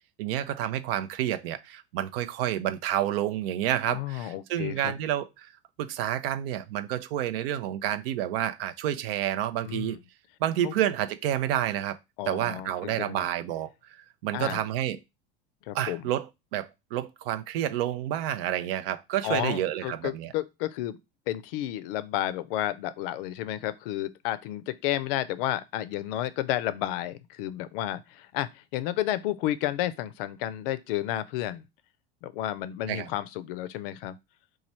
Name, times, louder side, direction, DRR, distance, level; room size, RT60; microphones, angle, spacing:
voice 1, 0.2-5.5 5.8-10.0 10.4-12.0 12.3-15.0 15.7-20.3 32.9-33.1, right 11 dB, 70° right, 0.5 m, -29 dB
voice 2, 3.8-4.9 9.6-10.0 10.6-10.7 12.2-13.2 14.3-14.6 15.7-16.1 19.2-21.0 21.3-31.6 32.2-34.2, left 13 dB, 65° left, 0.5 m, -31 dB
3.1 x 2.3 x 4.2 m
hypercardioid pair, 85°, 30 cm